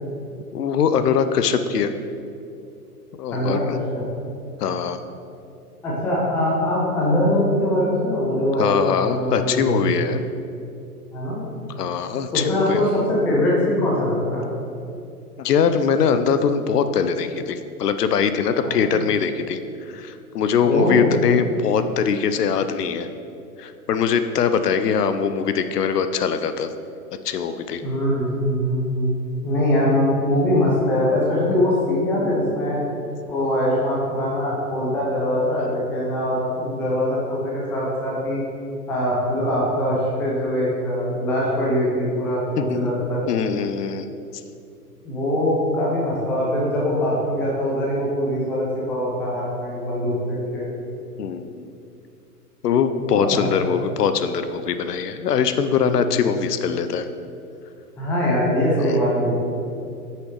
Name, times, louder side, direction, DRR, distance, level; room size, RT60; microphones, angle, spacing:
voice 1, 0.5-1.9 3.2-3.6 4.6-5.0 8.6-10.2 11.8-12.8 15.4-19.6 19.9-23.1 23.6-26.7 27.2-27.8 42.6-42.9 43.3-44.1 51.2-51.7 52.6-57.1 58.8-58.9, left 7 dB, 80° left, 10 dB, 0.6 m, -22 dB
voice 2, 3.3-4.0 5.8-9.9 11.1-11.4 12.3-14.5 18.6-19.0 20.7-21.2 27.8-29.1 29.4-32.8 33.3-38.4 38.9-43.2 45.0-50.7 53.0-53.7 55.7-56.0 58.0-59.3, left 1 dB, 5° left, -5 dB, 0.4 m, -22 dB
6.1 x 5.7 x 3.2 m, 2.6 s
figure-of-eight pair, 110°, 47 cm